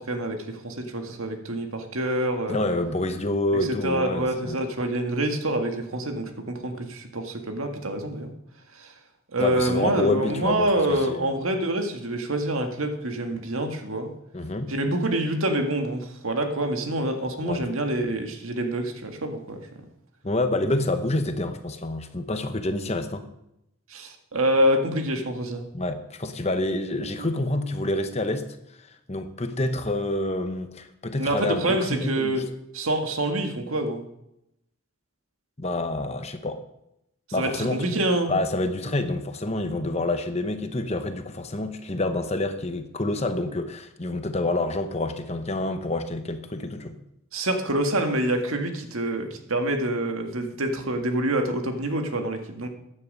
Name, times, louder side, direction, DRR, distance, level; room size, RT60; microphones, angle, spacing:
voice 1, 0.0-2.7 3.8-8.3 8.7-8.9 9.3-14.1 14.7-19.6 23.9-25.6 31.2-32.4 32.7-34.0 37.4-38.4 47.3-52.7, right 1 dB, 75° right, 5 dB, 1.8 m, -26 dB
voice 2, 2.5-4.6 9.4-11.4 14.3-14.7 17.4-17.6 20.2-23.3 25.7-28.5 29.1-32.4 35.6-36.6 37.3-37.8 38.3-46.9, left 2 dB, 30° left, 8 dB, 1.0 m, -28 dB
15.0 x 9.9 x 5.4 m, 0.82 s
head